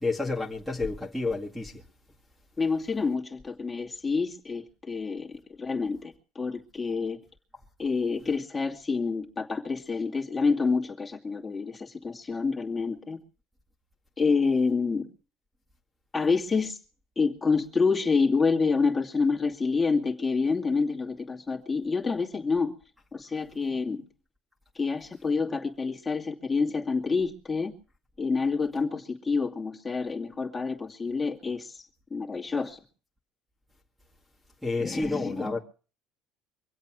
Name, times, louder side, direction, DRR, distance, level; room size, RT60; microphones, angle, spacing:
voice 1, 0.0-1.8 34.6-35.6, left 3 dB, ahead, 2.1 m, -30 dB
voice 2, 2.6-7.2 7.8-13.2 14.2-15.1 16.1-16.8 17.2-22.7 23.1-24.0 24.7-27.7 28.2-32.8 34.8-35.6, left 4 dB, 20° left, 2.3 m, -28 dB
24.0 x 8.2 x 6.2 m
cardioid pair, 120°, 0 cm